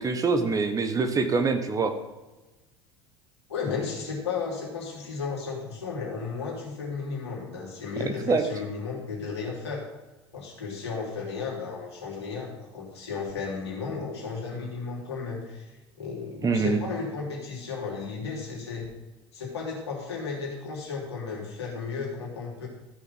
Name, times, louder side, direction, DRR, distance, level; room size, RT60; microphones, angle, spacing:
voice 1, 0.0-1.9 8.3-8.4 16.4-16.8, right 4 dB, 25° right, 7 dB, 1.1 m, -24 dB
voice 2, 3.5-9.8 10.3-15.7 16.0-18.9 19.3-22.7, left 5 dB, 70° left, -3 dB, 3.2 m, -34 dB
13.5 x 6.1 x 5.5 m, 1.1 s
figure-of-eight pair, 70°, 14 cm